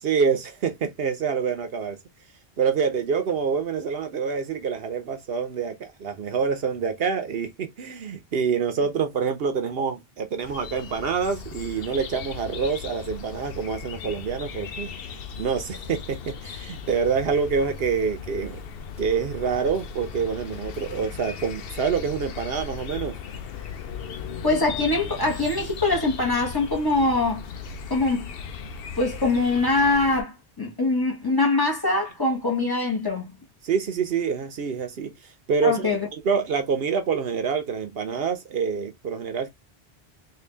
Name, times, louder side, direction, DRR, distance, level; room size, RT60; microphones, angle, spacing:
voice 1, 0.0-2.0 2.6-14.9 15.4-18.6 19.0-23.2 33.6-39.5, right 6 dB, 70° right, 0.9 m, -26 dB
sound 1, 10.4-30.2, left 6 dB, 65° left, 0.8 m, -37 dB
voice 2, 24.4-27.4 27.9-28.3 29.0-33.3 35.6-36.1, left 3 dB, 20° left, 1.2 m, -23 dB
3.8 x 2.6 x 3.2 m
omnidirectional pair, 1.1 m